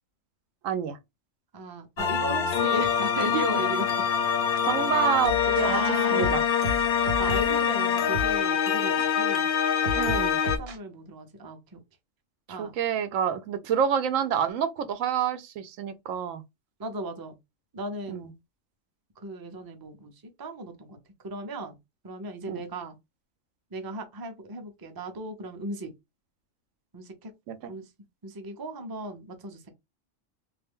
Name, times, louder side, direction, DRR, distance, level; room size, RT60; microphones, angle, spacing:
voice 1, 0.6-1.0 4.6-6.4 9.9-10.4 12.5-16.4 18.1-18.3 22.5-22.6 27.5-27.7, right 8 dB, 80° right, 1.0 m, -28 dB
voice 2, 1.5-3.9 5.6-6.3 7.2-9.5 10.5-11.8 12.5-12.7 16.8-17.3 17.7-18.2 19.2-20.1 20.4-21.0 21.2-21.7 22.0-22.9 23.7-25.9 26.9-27.3 27.7-27.8 28.2-29.7, right 2 dB, 25° right, 0.5 m, -36 dB
sound 1, 2.0-10.6, left 7 dB, 60° left, 0.6 m, -25 dB
sound 2, 5.2-5.8 6.2-7.6 8.1-8.4 9.0-9.1 9.8-10.8, left 1 dB, 55° right, 0.9 m, -33 dB
3.4 x 2.5 x 3.5 m
omnidirectional pair, 1.3 m